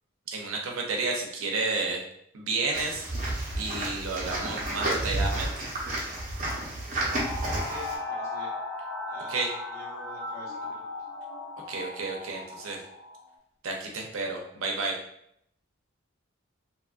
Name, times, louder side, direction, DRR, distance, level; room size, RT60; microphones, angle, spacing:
voice 1, 0.3-2.0 2.3-3.0 3.5-5.6 9.3-9.5 11.7-12.8 13.6-15.0, right 3 dB, 85° right, 1 dB, 0.6 m, -31 dB
sound 1, 2.7-8.0, right 1 dB, 35° right, 0.7 m, -31 dB
sound 2, 7.1-13.2, left 2 dB, 65° left, 0.8 m, -37 dB
voice 2, 7.4-8.5 9.1-9.4 9.7-10.6, left 1 dB, 15° left, -9 dB, 0.8 m, -46 dB
2.8 x 2.4 x 2.4 m, 0.73 s
head